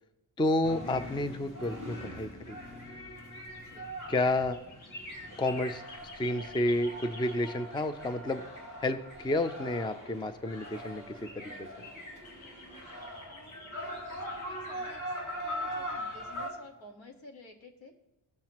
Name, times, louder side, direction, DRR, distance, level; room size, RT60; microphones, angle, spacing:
voice 1, 0.4-2.6 4.1-4.6 5.4-8.4 8.8-11.9, left 2 dB, 10° left, 11 dB, 0.4 m, -31 dB
sound 1, 0.6-16.5, equal, 40° left, 2.8 m, -42 dB
sound 2, 2.9-9.7 10.3-10.4 10.6-16.4 16.7-16.8, left 1 dB, 90° left, 2.6 m, -50 dB
voice 2, 13.3-15.1 15.4-17.9, left 1 dB, 70° left, 3 dB, 1.7 m, -53 dB
17.5 x 7.4 x 3.0 m, 0.97 s
wide cardioid pair, 115°, 47 cm